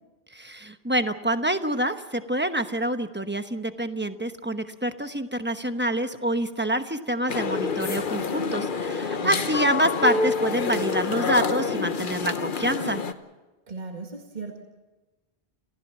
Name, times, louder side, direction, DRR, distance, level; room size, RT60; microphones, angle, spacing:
voice 1, 0.3-13.0, right 1 dB, 10° right, 8 dB, 1.0 m, -27 dB
sound 1, 7.3-13.1, left 4 dB, 55° left, 1.1 m, -27 dB
voice 2, 13.7-14.6, right 4 dB, 45° right, 2 dB, 2.1 m, -37 dB
28.5 x 15.5 x 7.4 m, 1.2 s
omnidirectional pair, 1.1 m